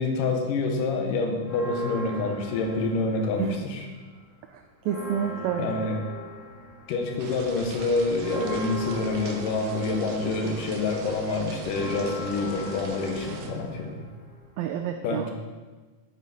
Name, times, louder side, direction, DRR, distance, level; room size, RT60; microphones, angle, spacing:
voice 1, 0.0-3.9 5.6-6.0 6.9-14.0 15.0-15.3, left 3 dB, 80° left, 3 dB, 2.7 m, -27 dB
sound 1, 1.4-3.8 4.2-14.7, equal, 50° left, 3.5 m, -40 dB
voice 2, 4.5-5.8 14.6-15.3, right 9 dB, 85° right, 5 dB, 1.5 m, -29 dB
sound 2, 7.2-13.5, right 5 dB, 70° right, 1.5 m, -42 dB
sound 3, 7.9-13.8, right 2 dB, 25° right, 1.5 m, -44 dB
8.9 x 8.2 x 4.1 m, 1.3 s
omnidirectional pair, 3.7 m